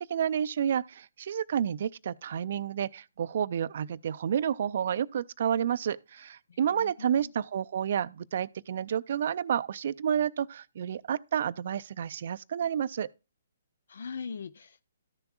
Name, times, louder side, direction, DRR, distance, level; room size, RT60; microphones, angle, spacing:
voice 1, 0.0-13.1, right 9 dB, 55° right, 0.4 m, -30 dB
voice 2, 6.5-7.3 13.9-14.8, left 5 dB, 70° left, 0.4 m, -41 dB
13.5 x 6.8 x 2.4 m
hypercardioid pair, 135°, 0 cm